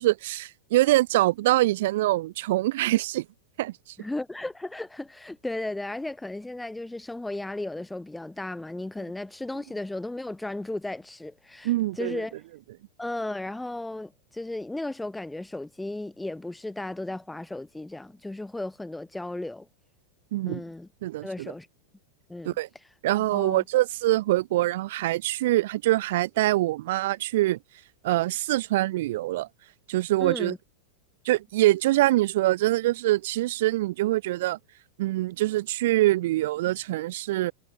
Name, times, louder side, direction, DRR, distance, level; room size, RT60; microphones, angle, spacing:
voice 1, 0.0-3.3 3.6-3.7 11.6-12.2 20.3-20.6 21.0-21.5 22.4-22.7 23.0-27.6 28.0-29.5 29.9-30.5 31.2-34.6 35.0-37.5, right 16 dB, 55° right, 0.4 m, -24 dB
voice 2, 4.0-12.3 13.0-19.7 20.5-20.9 21.2-21.7 22.3-22.6 23.2-23.6 30.2-30.6, left 2 dB, 5° left, 3.0 m, -35 dB
figure-of-eight pair, 90°, 0 cm